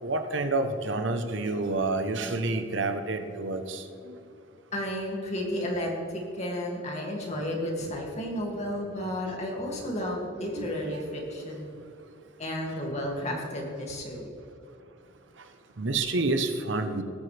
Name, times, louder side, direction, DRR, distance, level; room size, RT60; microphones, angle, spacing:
voice 1, 0.0-4.1 8.2-8.3 10.5-11.0 15.8-17.0, right 2 dB, 65° right, 7 dB, 0.9 m, -29 dB
voice 2, 4.7-11.7 12.4-14.3, left 1 dB, 35° left, -1 dB, 2.3 m, -32 dB
18.0 x 9.1 x 3.4 m, 2.7 s
head